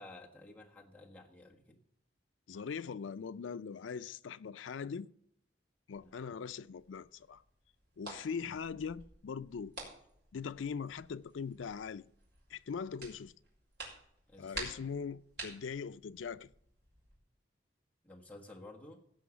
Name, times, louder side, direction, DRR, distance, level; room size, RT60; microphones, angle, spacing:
voice 1, 0.0-1.8 6.0-6.2 8.4-8.6 14.3-14.9 18.0-19.0, left 2 dB, 10° left, 1.4 m, -53 dB
voice 2, 2.5-5.1 5.9-7.4 8.0-9.7 10.3-12.1 12.5-13.3 14.4-16.5, left 6 dB, 85° left, 0.4 m, -41 dB
sound 1, 5.9-17.2, right 3 dB, 60° right, 4.3 m, -51 dB
16.5 x 5.6 x 7.1 m
head